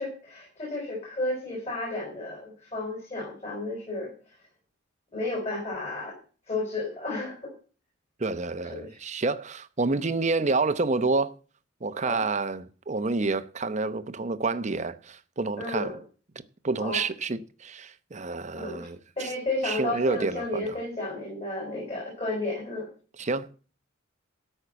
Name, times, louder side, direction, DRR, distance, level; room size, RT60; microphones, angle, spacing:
voice 1, 0.0-4.1 5.1-6.2 6.5-7.5 8.7-8.9 10.4-10.5 12.0-12.2 15.6-16.0 16.8-17.0 18.5-18.9 19.2-22.9, left 2 dB, 35° left, 5.2 m, -32 dB
voice 2, 8.2-11.4 11.8-16.0 16.6-19.3 19.6-20.8 23.2-23.5, right 3 dB, 35° right, 0.8 m, -29 dB
13.5 x 5.6 x 7.9 m
head